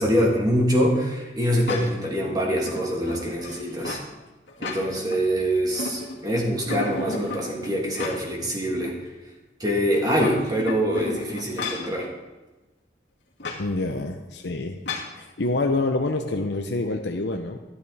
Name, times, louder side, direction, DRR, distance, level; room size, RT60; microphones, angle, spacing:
voice 1, 0.0-4.0 4.6-8.9 9.6-12.1, equal, 25° right, -2 dB, 2.9 m, -24 dB
sound 1, 1.7-2.1 2.6-4.1 4.5-5.2 5.5-6.3 6.7-8.5 8.8-8.9 10.0-11.9 13.4-13.7 14.9-15.2, left 3 dB, 90° left, 2.2 m, -34 dB
voice 2, 13.6-14.8 15.1-17.6, left 2 dB, 70° left, 4 dB, 0.9 m, -27 dB
12.5 x 12.5 x 4.2 m, 1.1 s
head